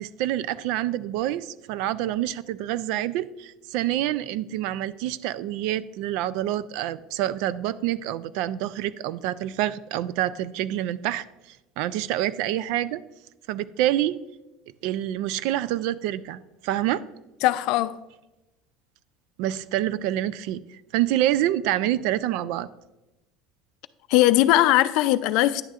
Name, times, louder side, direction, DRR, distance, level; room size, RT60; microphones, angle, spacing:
voice 1, 0.0-13.0 13.5-14.1 14.8-17.0 19.4-22.7, right 13 dB, 70° right, 0.3 m, -27 dB
voice 2, 17.4-18.0 24.1-25.6, left 15 dB, 60° left, 0.4 m, -19 dB
10.0 x 9.1 x 2.4 m
cardioid pair, 165°, 0 cm